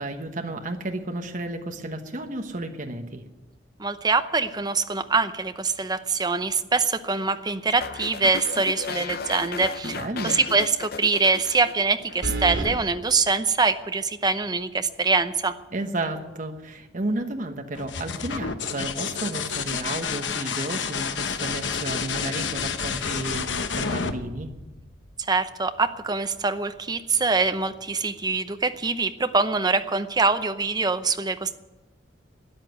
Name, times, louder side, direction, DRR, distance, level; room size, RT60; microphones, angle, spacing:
voice 1, 0.0-3.2 9.8-10.4 15.7-23.5 23.7-24.5, right 2 dB, 45° right, 5 dB, 1.2 m, -32 dB
voice 2, 3.8-10.0 10.2-15.5 25.3-31.5, right 4 dB, 20° right, 9 dB, 0.8 m, -24 dB
sound 1, 7.8-12.3 12.5-12.9, left 5 dB, 55° left, 0.6 m, -35 dB
sound 2, 9.1-9.6 9.9-10.0 12.2-12.8, right 2 dB, 90° right, 2.5 m, -29 dB
sound 3, 17.7-25.3 27.1-27.7, left 6 dB, 80° left, 1.0 m, -30 dB
13.0 x 10.0 x 9.4 m, 1.1 s
head